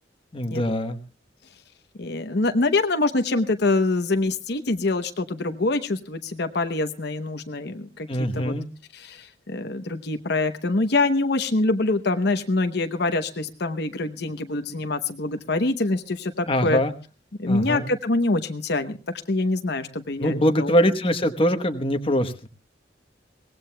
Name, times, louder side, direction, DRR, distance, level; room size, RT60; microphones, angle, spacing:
voice 1, 0.3-1.0 8.1-8.7 16.5-16.9 17.5-17.9 20.2-22.5, equal, 30° left, 7 dB, 1.1 m, -23 dB
voice 2, 2.0-8.5 8.9-16.8 17.4-19.0 19.3-20.8, left 2 dB, 65° left, 7 dB, 0.9 m, -25 dB
23.5 x 18.5 x 2.2 m, 0.32 s
head